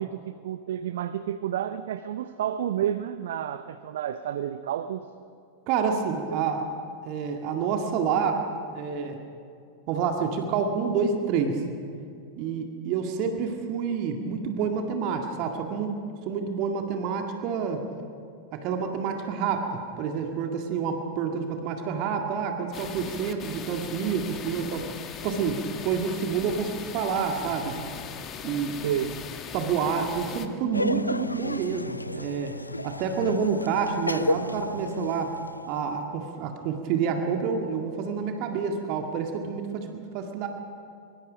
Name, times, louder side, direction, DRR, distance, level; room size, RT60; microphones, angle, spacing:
voice 1, 0.0-5.1 6.3-6.5 28.8-29.2, right 10 dB, 60° right, 12 dB, 0.7 m, -30 dB
voice 2, 5.7-6.7 7.0-8.4 8.7-9.2 9.9-11.6 12.4-16.0 16.3-17.8 18.5-24.9 25.2-27.8 28.4-29.0 29.5-32.6 32.8-35.4 35.7-40.5, right 6 dB, 45° right, 3 dB, 2.0 m, -28 dB
sound 1, 22.7-30.5, left 7 dB, 30° left, 1.6 m, -39 dB
Laughter, 30.7-35.8, left 2 dB, 85° left, 0.5 m, -32 dB
23.5 x 23.5 x 5.2 m, 2.4 s
figure-of-eight pair, 90°, 0 cm